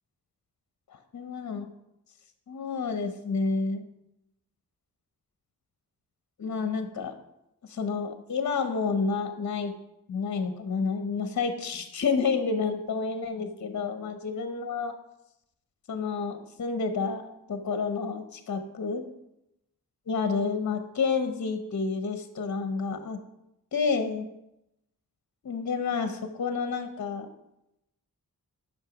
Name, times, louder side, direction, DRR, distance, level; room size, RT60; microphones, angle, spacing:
voice 1, 1.1-1.7 2.5-3.8 6.4-7.1 7.7-9.7 10.1-14.9 15.9-19.0 20.1-23.2 23.7-24.3 25.4-27.3, left 5 dB, 55° left, 8 dB, 0.8 m, -29 dB
8.8 x 6.1 x 5.1 m, 0.84 s
wide cardioid pair, 165°, 35 cm